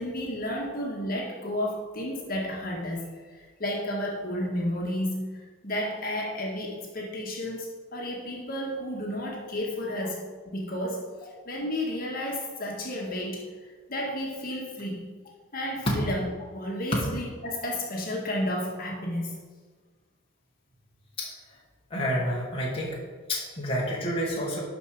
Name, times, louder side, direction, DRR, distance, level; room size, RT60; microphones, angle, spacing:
voice 1, 0.0-5.4 5.6-13.4 13.9-15.1 15.5-19.4, left 1 dB, 45° left, -2 dB, 1.8 m, -32 dB
voice 2, 21.9-23.0 23.3-24.6, equal, 25° left, -4 dB, 1.8 m, -28 dB
12.0 x 5.3 x 5.0 m, 1.5 s
head